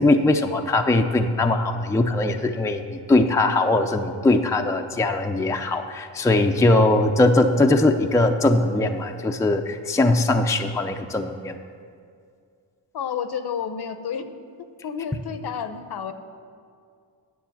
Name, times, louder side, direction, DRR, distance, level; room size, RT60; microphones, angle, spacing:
voice 1, 0.0-11.6, left 2 dB, 5° left, 5 dB, 0.5 m, -20 dB
voice 2, 12.9-14.3 14.8-16.1, left 7 dB, 55° left, 10 dB, 0.8 m, -30 dB
9.5 x 6.7 x 7.1 m, 2.3 s
cardioid pair, 70°, 47 cm